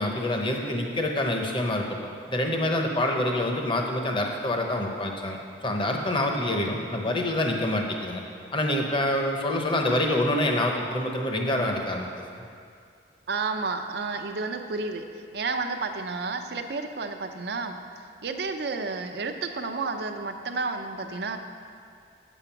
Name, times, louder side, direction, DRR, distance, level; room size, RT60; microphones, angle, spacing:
voice 1, 0.0-1.8 2.3-5.4 5.6-8.2 8.5-12.3, left 1 dB, 30° left, 2 dB, 0.9 m, -26 dB
voice 2, 13.3-15.0 15.3-17.8 18.2-21.4, right 4 dB, 65° right, 6 dB, 0.6 m, -31 dB
7.8 x 7.2 x 5.8 m, 2.3 s
head